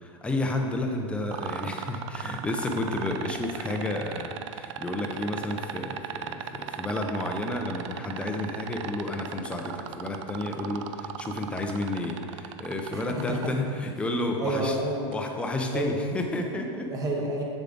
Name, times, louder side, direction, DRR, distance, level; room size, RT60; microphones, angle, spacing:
voice 1, 0.0-14.8 15.1-16.9, left 2 dB, 5° left, 2 dB, 0.6 m, -31 dB
sound 1, 1.3-13.5 15.1-15.2, right 11 dB, 65° right, 0.4 m, -36 dB
voice 2, 12.9-13.5 14.4-15.1 15.7-16.0 16.8-17.4, right 2 dB, 20° right, 0 dB, 1.1 m, -29 dB
7.2 x 6.9 x 3.9 m, 2.4 s
supercardioid pair, 150°, 16 cm